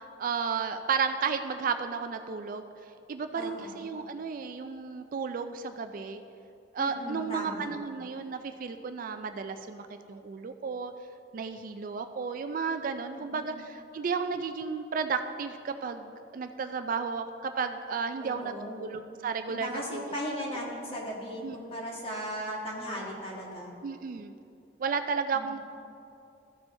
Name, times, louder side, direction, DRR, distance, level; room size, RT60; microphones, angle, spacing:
voice 1, 0.2-2.7 3.1-6.2 6.7-10.9 11.3-18.5 18.8-20.1 21.4-21.6 23.8-24.3 24.8-25.6, right 5 dB, 45° right, 8 dB, 0.3 m, -33 dB
voice 2, 3.3-3.8 6.8-7.7 13.1-13.5 18.2-18.9 19.5-23.7 25.3-25.5, equal, 30° left, -4 dB, 1.7 m, -37 dB
14.0 x 4.9 x 3.7 m, 2.7 s
head